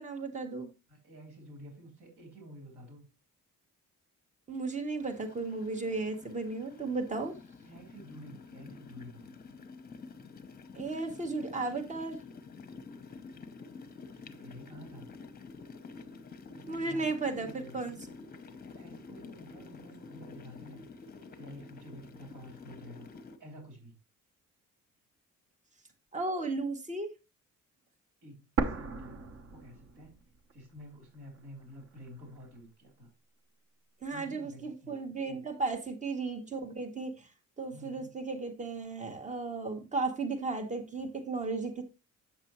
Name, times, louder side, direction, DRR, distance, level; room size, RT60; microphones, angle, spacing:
voice 1, 0.0-0.7 4.5-7.3 10.7-12.2 16.7-18.0 26.1-27.1 34.0-37.3 37.6-41.8, right 3 dB, 25° right, 6 dB, 1.3 m, -35 dB
voice 2, 0.9-3.1 7.6-9.5 14.0-15.1 16.5-18.0 18.6-23.1 23.4-24.0 28.2-30.2 30.5-33.1 34.1-35.0 35.3-35.5 37.7-38.1, equal, 75° right, 1 dB, 3.6 m, -51 dB
sound 1, 5.0-23.4, left 4 dB, 30° left, 0.8 m, -49 dB
sound 2, 28.6-30.5 30.8-30.9 31.6-32.6, right 4 dB, 45° right, 1.1 m, -35 dB
8.4 x 6.7 x 3.0 m, 0.27 s
cardioid pair, 130°, 31 cm